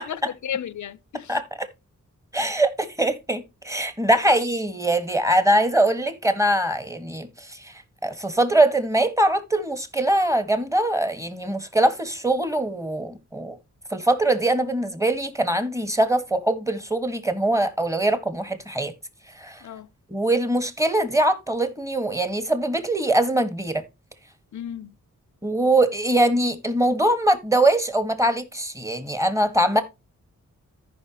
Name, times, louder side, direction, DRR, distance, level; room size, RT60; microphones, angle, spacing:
voice 1, 0.0-1.3 4.3-4.4 5.5-5.6 19.6-19.9 24.5-24.9, left 9 dB, 65° left, 0.7 m, -34 dB
voice 2, 1.3-1.7 2.3-13.6 13.9-18.9 19.3-19.6 20.1-23.8 25.4-29.8, right 1 dB, 10° right, 1.6 m, -22 dB
14.5 x 5.4 x 3.0 m
wide cardioid pair, 75°, 31 cm